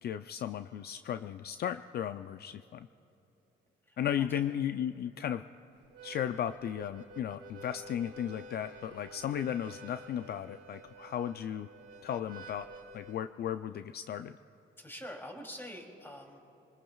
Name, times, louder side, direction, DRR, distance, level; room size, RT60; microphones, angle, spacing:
voice 1, 0.0-2.9 4.0-5.4 6.0-11.7 12.0-12.7 12.9-14.4, left 10 dB, 55° left, 10 dB, 0.4 m, -35 dB
voice 2, 3.9-4.4 14.8-16.4, equal, 10° left, 0 dB, 3.0 m, -45 dB
Harmonica, 5.8-13.2, right 2 dB, 70° right, 2.1 m, -50 dB
25.5 x 20.5 x 2.4 m, 2.9 s
cardioid pair, 90°, 20 cm